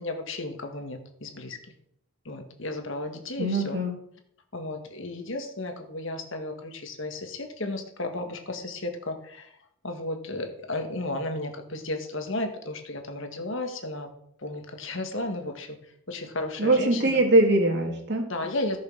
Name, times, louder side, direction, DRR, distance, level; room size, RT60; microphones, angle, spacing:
voice 1, 0.0-1.6 2.3-3.8 4.5-9.5 9.8-14.1 14.4-15.8 16.1-17.2 18.3-18.8, left 2 dB, 60° left, 5 dB, 1.9 m, -34 dB
voice 2, 3.4-3.9 16.6-18.3, right 1 dB, 50° right, 2 dB, 2.8 m, -22 dB
14.5 x 6.6 x 6.4 m, 0.69 s
head